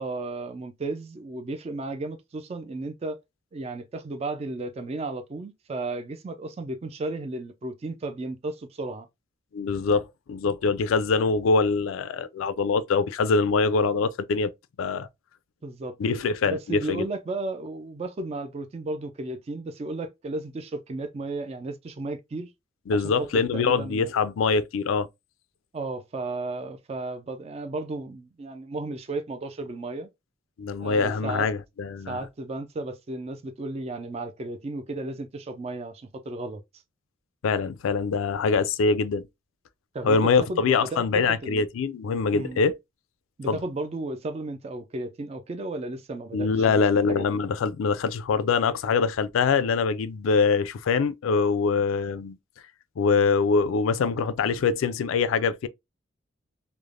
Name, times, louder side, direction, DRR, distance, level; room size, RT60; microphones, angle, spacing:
voice 1, 0.0-3.2 3.5-9.1 15.6-16.0 16.5-22.5 22.9-24.1 25.7-30.1 30.8-31.5 32.1-36.6 39.9-41.7 42.3-42.6 43.4-47.3, right 2 dB, 30° right, 0.3 m, -34 dB
voice 2, 9.5-14.5 14.8-15.1 16.0-17.1 22.9-25.1 30.6-32.2 37.4-39.2 40.0-42.8 43.5-43.6 46.3-52.4 53.0-55.7, left 4 dB, 85° left, 0.4 m, -24 dB
3.2 x 2.1 x 2.4 m
head